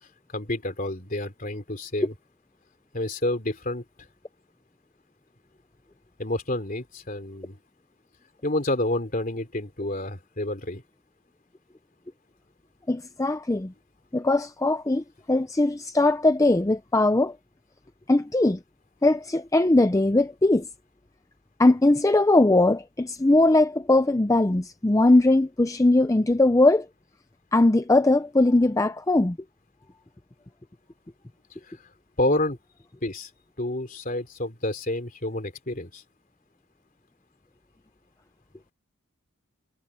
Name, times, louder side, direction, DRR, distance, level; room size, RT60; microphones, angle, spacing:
voice 1, 0.3-2.1 2.9-3.8 6.2-7.6 8.4-10.8 31.7-31.8 32.2-32.6 33.0-33.3 33.6-36.0, left 1 dB, 40° left, 3.3 m, -29 dB
voice 2, 12.9-13.7 14.1-17.3 18.1-18.6 19.0-20.7 21.6-26.9 27.5-29.4, left 2 dB, 15° left, 0.5 m, -20 dB
head